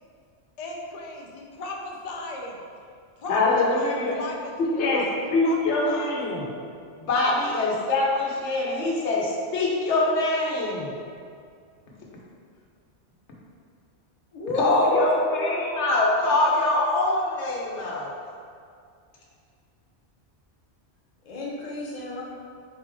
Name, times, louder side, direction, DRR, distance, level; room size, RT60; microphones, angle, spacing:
voice 1, 0.6-2.6 3.2-3.4 3.7-5.6 5.8-6.3, left 2 dB, 60° left, 0 dB, 0.4 m, -37 dB
voice 2, 3.3-4.1 4.8-5.0 5.3-6.4 7.0-10.9 14.5-18.1, left 2 dB, 80° left, -3 dB, 1.0 m, -23 dB
voice 3, 14.3-15.5 21.2-22.2, left 1 dB, 40° left, -5 dB, 0.8 m, -28 dB
4.1 x 3.3 x 3.3 m, 2.2 s
omnidirectional pair, 1.2 m